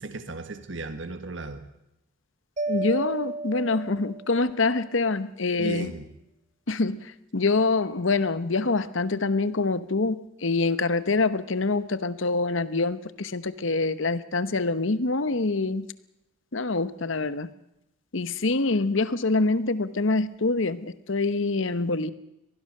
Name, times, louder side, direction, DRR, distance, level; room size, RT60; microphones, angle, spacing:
voice 1, 0.0-1.6 5.6-6.1, right 2 dB, 60° right, 9 dB, 1.6 m, -35 dB
Mallet percussion, 2.6-4.6, right 2 dB, 35° right, 1.4 m, -33 dB
voice 2, 2.7-5.9 6.7-15.9 16.5-17.5 18.1-22.1, left 3 dB, 65° left, 14 dB, 1.0 m, -25 dB
24.0 x 19.0 x 6.6 m, 0.85 s
head